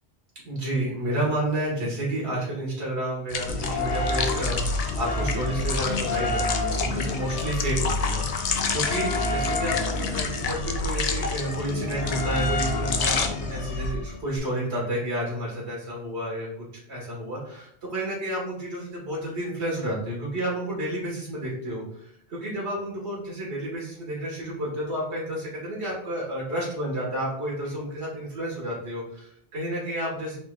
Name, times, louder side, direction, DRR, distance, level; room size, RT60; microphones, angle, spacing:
voice 1, 0.5-30.4, right 1 dB, 85° right, -4 dB, 1.8 m, -31 dB
sound 1, 3.3-13.3, left 5 dB, 55° left, 0.4 m, -31 dB
sound 2, 3.5-14.4, left 2 dB, 90° left, 0.9 m, -29 dB
4.3 x 4.2 x 2.3 m, 0.67 s
omnidirectional pair, 1.1 m